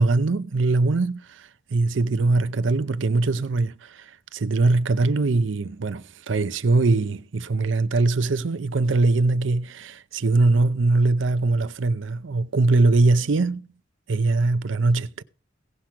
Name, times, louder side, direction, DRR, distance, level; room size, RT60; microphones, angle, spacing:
voice 1, 0.0-13.6 14.1-15.2, right 3 dB, 75° right, 0.6 m, -22 dB
17.0 x 5.9 x 4.9 m
head